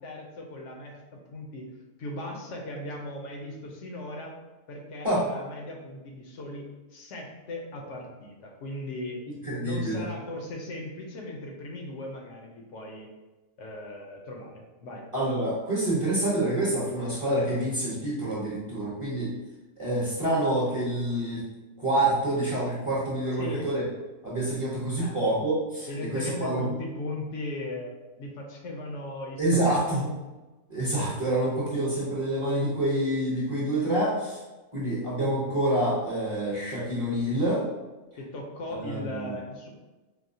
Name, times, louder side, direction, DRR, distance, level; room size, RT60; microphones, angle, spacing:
voice 1, 0.0-1.7 2.0-4.3 4.7-9.2 9.6-13.1 13.6-15.1 23.4-23.7 25.0-25.2 25.9-29.8 38.2-39.7, left 1 dB, 70° left, 0 dB, 0.9 m, -38 dB
voice 2, 9.3-10.0 15.1-19.3 19.8-21.4 21.8-23.8 24.2-26.6 29.4-30.1 30.7-34.4 34.7-37.6 38.7-39.4, right 1 dB, 30° right, -7 dB, 0.7 m, -27 dB
4.7 x 2.0 x 2.6 m, 1.1 s
omnidirectional pair, 1.3 m